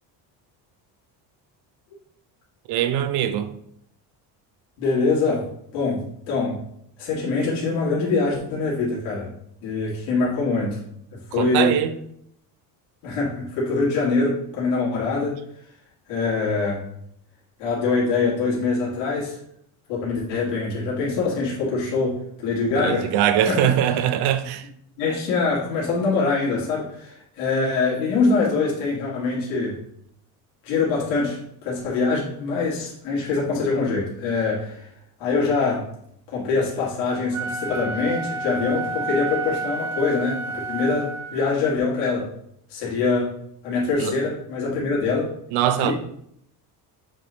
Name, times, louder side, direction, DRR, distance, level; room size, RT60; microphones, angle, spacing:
voice 1, 2.7-3.5 11.4-11.9 22.8-24.6 44.0-44.1 45.5-45.9, right 10 dB, 65° right, 0.7 m, -22 dB
voice 2, 4.8-5.5 5.7-6.0 6.3-6.6 7.0-9.3 9.6-10.8 11.3-11.8 13.0-15.3 16.1-16.8 17.6-19.4 19.9-23.1 23.5-24.0 25.0-29.8 30.6-34.9 35.2-35.9 36.3-42.3 42.7-43.3 43.6-45.3 45.8-45.9, left 4 dB, 75° left, 2.3 m, -24 dB
Wind instrument woodwind instrument, 37.3-41.6, right 3 dB, 80° right, 1.7 m, -30 dB
7.5 x 3.5 x 3.9 m
cardioid pair, 175°, 41 cm